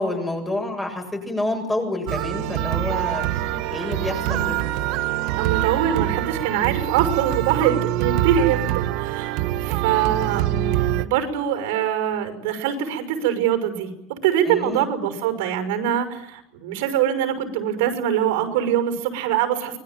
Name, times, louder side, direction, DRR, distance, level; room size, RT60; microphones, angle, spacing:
voice 1, 0.0-3.3 3.5-4.6 14.4-14.9, left 2 dB, 10° left, 3 dB, 7.7 m, -28 dB
sound 1, 2.1-11.1, right 14 dB, 60° right, 1.5 m, -24 dB
voice 2, 4.3-4.6 5.4-19.8, right 10 dB, 90° right, 8 dB, 6.3 m, -23 dB
25.5 x 22.0 x 9.3 m, 0.79 s
cardioid pair, 150°, 0 cm